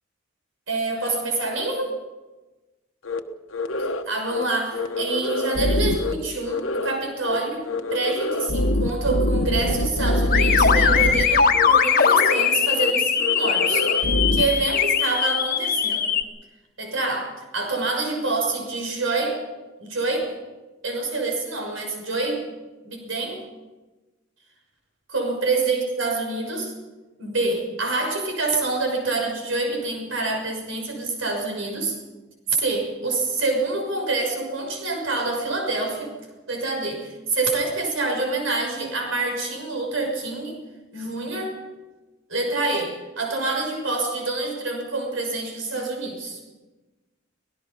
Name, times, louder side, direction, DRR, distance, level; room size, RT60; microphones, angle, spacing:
voice 1, 0.7-1.9 3.8-7.7 7.9-16.1 16.8-19.4 19.8-20.4 20.8-22.4 22.8-23.4 25.1-26.7 27.2-32.0 32.5-36.1 36.5-40.6 40.9-41.5 42.3-46.4, right 3 dB, 75° right, 2 dB, 6.3 m, -26 dB
sound 1, 3.1-3.2 3.5-4.0 4.3-4.4 4.7-6.1 6.5-7.0 7.2-7.4 7.7-11.2 11.5-11.7 12.0-12.5 12.8-12.9 13.2-14.4, left 1 dB, 80° left, 1.2 m, -24 dB
sound 2, 10.3-16.2, left 7 dB, 45° left, 1.5 m, -20 dB
25.5 x 18.5 x 5.6 m, 1.2 s
head